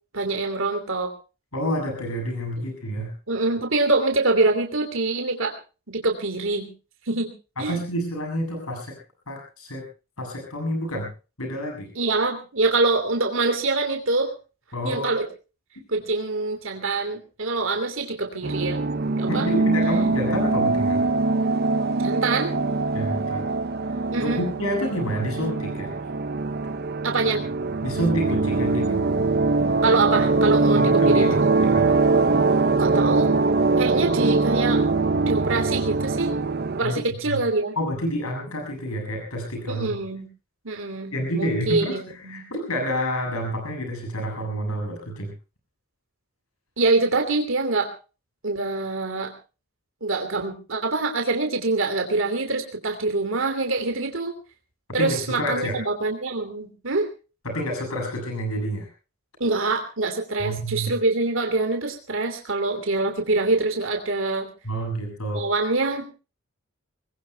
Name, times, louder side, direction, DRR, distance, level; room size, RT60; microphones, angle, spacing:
voice 1, 0.1-1.1 2.6-2.7 3.3-5.6 5.9-6.7 7.1-7.3 7.6-7.8 11.9-14.3 14.8-15.3 15.9-19.5 22.0-22.5 24.1-24.4 27.0-27.4 29.8-31.5 32.8-33.4 33.8-34.8 35.3-36.3 36.7-37.8 39.7-40.3 40.6-42.5 46.8-47.9 48.4-49.3 50.0-54.3 54.9-57.1 59.4-64.5 65.3-66.1, right 3 dB, 65° right, 4 dB, 3.0 m, -25 dB
voice 2, 1.5-3.1 7.6-9.0 9.3-9.8 10.2-11.1 11.4-11.9 14.7-15.1 19.3-21.0 22.9-23.5 24.2-25.9 27.8-29.0 30.7-31.9 36.8-37.0 37.3-37.4 37.7-39.9 41.1-45.3 55.0-55.8 57.4-58.9 60.4-60.9 64.6-65.4, equal, 85° left, 2 dB, 7.0 m, -28 dB
sound 1, 18.4-36.8, right 3 dB, 45° right, 0.7 m, -22 dB
25.5 x 21.0 x 2.3 m, 0.34 s
head